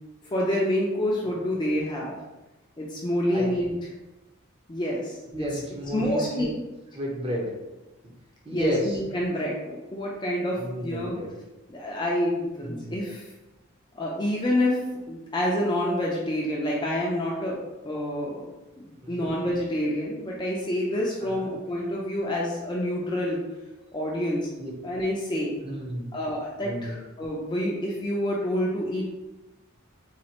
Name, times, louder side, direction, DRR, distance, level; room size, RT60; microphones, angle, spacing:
voice 1, 0.3-2.2 2.8-3.7 4.7-5.2 5.9-6.5 8.5-11.1 11.7-13.2 13.9-14.8 15.1-18.4 18.8-23.4 23.9-24.5 24.8-25.6 26.1-29.0, left 1 dB, 20° left, -4 dB, 0.4 m, -27 dB
voice 2, 5.3-6.5 6.9-7.5 8.4-9.0 10.6-11.4 12.6-13.1 19.0-19.3 21.3-21.5 24.6-24.7 25.6-26.1 26.6-27.0, equal, 25° right, -2 dB, 0.7 m, -32 dB
4.1 x 2.4 x 2.9 m, 1.0 s
head